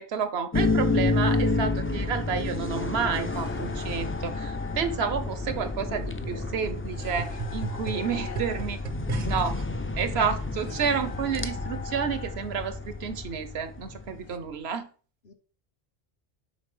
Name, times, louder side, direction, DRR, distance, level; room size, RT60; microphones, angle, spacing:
voice 1, 0.0-8.8 9.2-9.6 10.0-14.9, right 6 dB, 80° right, 1.1 m, -30 dB
sound 1, 0.5-14.2, left 3 dB, 20° left, 0.4 m, -30 dB
sound 2, 3.2-14.4, left 6 dB, 85° left, 0.9 m, -45 dB
sound 3, 5.2-9.6 10.4-10.5, right 6 dB, 50° right, 0.6 m, -38 dB
voice 2, 7.9-8.7 9.5-9.7 15.2-15.3, left 4 dB, 55° left, 1.1 m, -46 dB
7.6 x 4.1 x 5.5 m
omnidirectional pair, 1.0 m